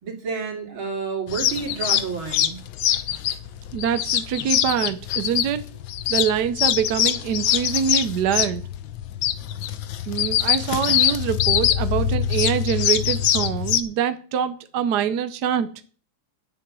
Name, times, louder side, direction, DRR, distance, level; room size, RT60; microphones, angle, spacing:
voice 1, 0.0-2.6, right 5 dB, 80° right, 1 dB, 3.7 m, -30 dB
sound 1, 1.3-13.8, left 10 dB, 75° left, 1.5 m, -23 dB
voice 2, 3.7-5.6 6.1-8.7 10.1-15.7, right 8 dB, 65° right, 11 dB, 1.2 m, -24 dB
10.5 x 7.7 x 7.6 m, 0.42 s
omnidirectional pair, 2.2 m